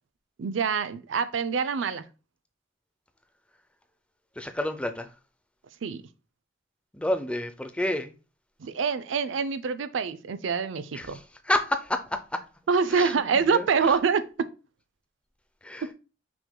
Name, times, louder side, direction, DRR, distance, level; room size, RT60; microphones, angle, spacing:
voice 1, 0.4-2.0 5.8-6.0 8.6-11.2 12.7-14.5, right 5 dB, 80° right, 0.4 m, -26 dB
voice 2, 4.4-5.1 6.9-8.1 10.9-12.4 12.9-13.9 15.6-15.9, left 1 dB, 5° left, 0.5 m, -30 dB
5.9 x 3.7 x 2.2 m
head